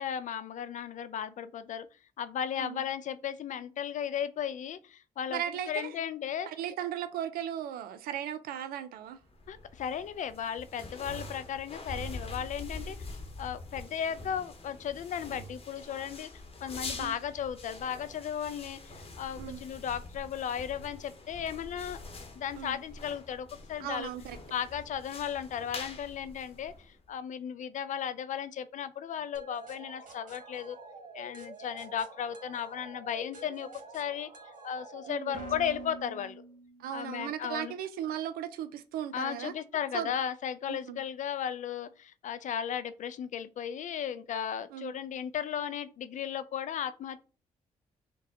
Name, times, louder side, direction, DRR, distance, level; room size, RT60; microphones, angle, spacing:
voice 1, 0.0-1.9 2.2-5.4 5.7-6.5 9.5-13.0 13.4-16.3 16.6-22.0 22.4-24.1 24.5-30.8 31.1-33.7 33.9-34.3 34.6-36.4 36.9-37.8 39.1-47.2, left 8 dB, 55° left, 0.4 m, -35 dB
voice 2, 5.3-5.9 6.5-9.2 17.0-17.1 19.4-19.6 22.6-22.8 23.8-24.4 35.1-35.5 36.8-39.5 39.9-40.1 40.7-41.0 44.7-44.9, right 10 dB, 75° right, 0.4 m, -37 dB
sound 1, 9.3-27.1, left 2 dB, 40° left, 0.9 m, -45 dB
sound 2, 29.3-37.1, right 2 dB, 60° right, 1.1 m, -47 dB
4.0 x 2.2 x 3.7 m
hypercardioid pair, 50°, 15 cm